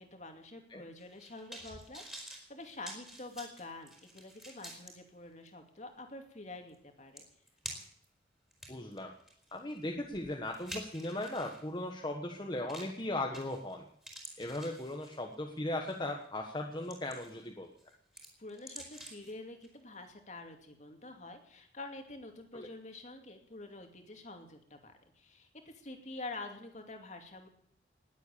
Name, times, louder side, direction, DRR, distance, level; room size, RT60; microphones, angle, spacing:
voice 1, 0.0-7.3 18.4-27.5, left 2 dB, 40° left, 5 dB, 2.6 m, -47 dB
sound 1, 1.0-4.9 5.5-5.6 6.7-6.8 7.2-8.1 8.5-11.6 12.7-13.0 13.3-13.7 14.0-15.3 15.9-16.1 16.6-17.5 17.8-19.3 19.6-19.7, right 1 dB, 5° right, 4.1 m, -48 dB
voice 2, 8.7-9.1 9.5-13.8 14.4-17.7 22.5-22.7, left 1 dB, 25° left, 1 dB, 1.4 m, -37 dB
19.5 x 8.3 x 8.6 m, 0.66 s
head